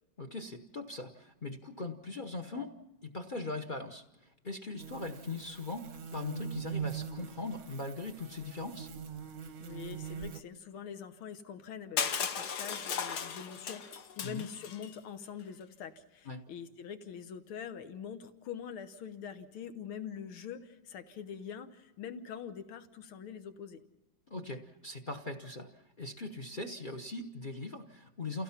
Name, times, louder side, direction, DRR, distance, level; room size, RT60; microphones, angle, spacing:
voice 1, 0.2-2.8 3.0-8.9 14.2-14.4 16.3-16.4 24.3-28.4, left 3 dB, 40° left, 6 dB, 0.7 m, -40 dB
sound 1, 4.8-10.4, right 7 dB, 55° right, 0.9 m, -42 dB
voice 2, 9.6-23.8, left 7 dB, 85° left, 9 dB, 2.0 m, -44 dB
Crushing, 12.0-14.9, left 7 dB, 55° left, 1.4 m, -36 dB
30.0 x 16.5 x 5.8 m, 1.0 s
omnidirectional pair, 2.3 m